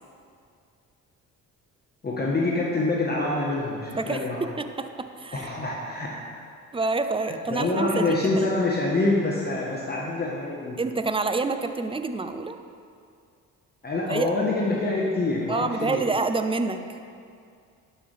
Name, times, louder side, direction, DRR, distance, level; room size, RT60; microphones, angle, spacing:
voice 1, 2.0-4.5 5.3-6.1 7.3-10.8 13.8-16.0, left 2 dB, 30° left, -4 dB, 1.3 m, -26 dB
voice 2, 4.0-5.5 6.7-8.5 10.8-12.6 14.1-14.3 15.5-17.0, right 3 dB, 15° right, 9 dB, 0.5 m, -28 dB
11.0 x 5.8 x 3.4 m, 2.3 s
supercardioid pair, 60°, 35 cm